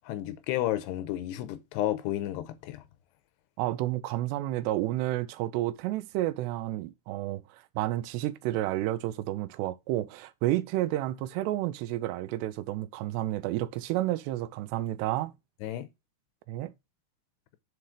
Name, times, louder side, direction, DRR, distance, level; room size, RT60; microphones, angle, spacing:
voice 1, 0.0-2.8 15.6-15.9, left 13 dB, 85° left, 2.8 m, -32 dB
voice 2, 3.6-15.3 16.5-16.7, right 15 dB, 85° right, 2.7 m, -31 dB
7.7 x 4.2 x 4.9 m
omnidirectional pair, 4.8 m